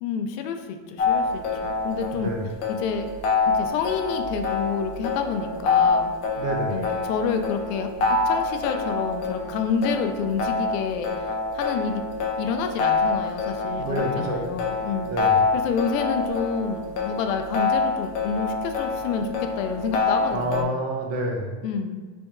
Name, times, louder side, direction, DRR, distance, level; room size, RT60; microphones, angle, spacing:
voice 1, 0.0-2.3 2.7-3.1 3.5-6.1 6.7-12.0 12.4-15.1 15.5-20.7 21.6-22.0, left 6 dB, 85° left, 6 dB, 0.6 m, -29 dB
sound 1, 1.0-20.6, left 4 dB, 35° left, 0.5 m, -26 dB
voice 2, 2.1-2.5 6.4-6.8 13.8-14.5 15.1-15.4 20.3-21.6, right 1 dB, 35° right, 2 dB, 0.5 m, -28 dB
3.5 x 2.3 x 4.1 m, 1.4 s
supercardioid pair, 140°, 47 cm